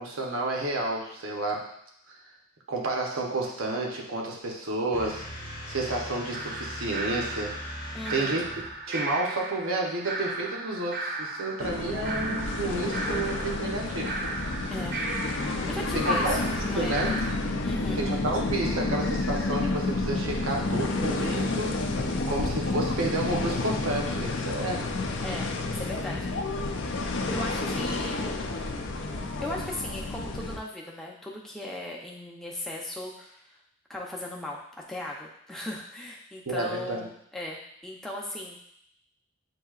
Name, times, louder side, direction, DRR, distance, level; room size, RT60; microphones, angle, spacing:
voice 1, 0.0-1.7 2.1-2.2 2.7-5.3 5.7-7.6 8.1-8.4 8.9-14.2 14.6-14.7 15.9-17.2 17.9-21.8 22.3-24.9 36.5-37.1, right 2 dB, 85° right, -1 dB, 0.9 m, -30 dB
sound 1, 4.9-8.9, left 1 dB, 40° left, 0.8 m, -40 dB
sound 2, 6.3-17.3, right 2 dB, 45° right, 0.6 m, -36 dB
voice 2, 7.9-8.4 14.7-15.0 15.7-17.0 17.6-18.0 25.2-26.3 27.3-28.3 29.4-33.6 33.9-34.6 34.9-38.6, left 1 dB, ahead, -3 dB, 0.6 m, -37 dB
sound 3, 11.6-30.6, left 2 dB, 65° left, 0.5 m, -30 dB
7.7 x 2.7 x 2.4 m, 0.71 s
head